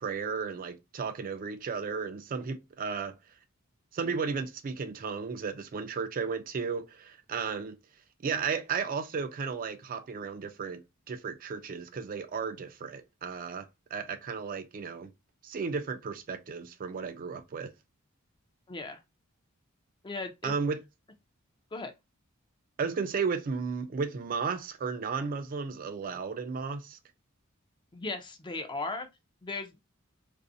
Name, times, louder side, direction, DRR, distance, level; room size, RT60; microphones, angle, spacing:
voice 1, 0.0-3.1 3.9-7.8 8.2-10.8 11.1-15.1 15.4-17.7 20.4-20.8 22.8-27.0, right 5 dB, 45° right, 0.4 m, -34 dB
voice 2, 18.7-19.0 20.0-20.5 21.7-21.9 27.9-29.1 29.4-29.7, left 3 dB, 25° left, 0.4 m, -36 dB
2.5 x 2.0 x 2.5 m
head